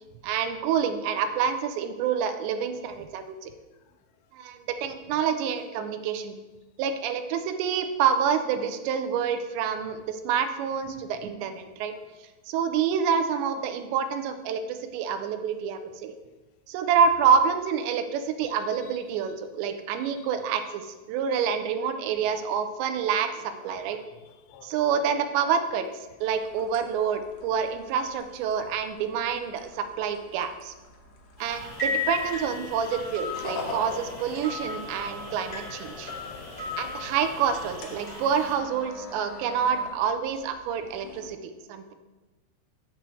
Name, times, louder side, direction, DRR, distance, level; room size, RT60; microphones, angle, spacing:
voice 1, 0.2-3.5 4.3-6.4 6.8-11.9 12.5-16.1 16.7-20.8 21.1-24.0 24.6-25.9 26.2-30.7 31.4-36.1 36.8-41.9, right 7 dB, 85° right, 8 dB, 2.8 m, -27 dB
voice 2, 18.4-19.2 20.0-20.2 23.6-24.9 31.7-31.9, left 8 dB, 85° left, 8 dB, 2.9 m, -54 dB
sound 1, 26.2-41.3, left 2 dB, 70° left, 2.5 m, -44 dB
sound 2, 31.4-38.5, left 3 dB, 25° left, 0.8 m, -36 dB
7.6 x 4.4 x 6.8 m, 1.1 s
omnidirectional pair, 5.1 m